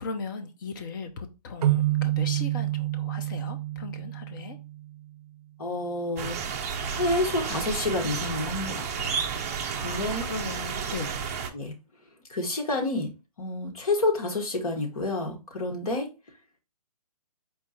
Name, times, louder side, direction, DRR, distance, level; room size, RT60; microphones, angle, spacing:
voice 1, 0.0-4.6 9.7-11.3, left 4 dB, 30° left, 0.7 m, -38 dB
sound 1, 1.6-5.1, right 15 dB, 75° right, 0.4 m, -28 dB
voice 2, 5.6-6.5 6.9-9.2 9.8-10.3 11.5-11.7 12.3-13.1 13.4-16.1, left 2 dB, 65° left, 1.6 m, -29 dB
sound 2, 6.2-11.5, right 6 dB, 25° right, 0.5 m, -32 dB
4.5 x 2.4 x 4.2 m
hypercardioid pair, 155°, 20 cm